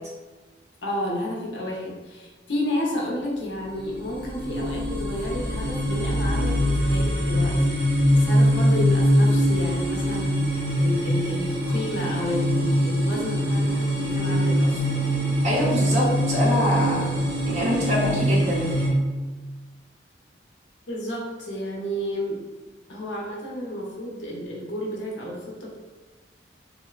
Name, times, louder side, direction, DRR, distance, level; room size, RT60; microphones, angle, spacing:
voice 1, 0.8-7.6 7.8-10.3 10.8-15.0 15.6-15.9 20.9-22.5 22.9-25.8, equal, 85° left, -2 dB, 0.6 m, -31 dB
sound 1, 3.6-18.9, equal, 90° right, 0.8 m, -23 dB
voice 2, 15.4-17.1 17.5-18.7, equal, 40° right, -6 dB, 0.8 m, -24 dB
3.0 x 2.0 x 2.3 m, 1.2 s
head